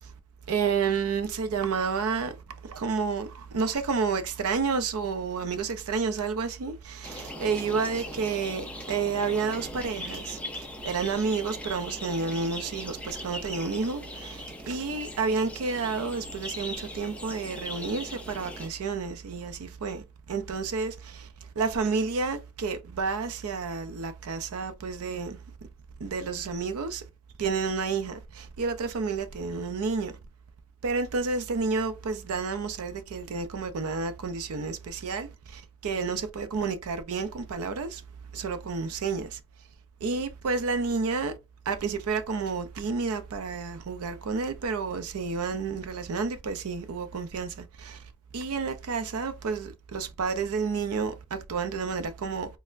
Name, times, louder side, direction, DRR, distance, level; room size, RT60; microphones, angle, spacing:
voice 1, 0.5-2.4 2.6-25.4 26.0-27.0 27.4-30.1 30.8-38.0 38.3-39.4 40.0-41.3 41.7-52.6, right 4 dB, 75° right, 0.5 m, -30 dB
sound 1, 7.0-18.7, left 1 dB, 5° left, 0.3 m, -40 dB
4.1 x 2.0 x 2.5 m
head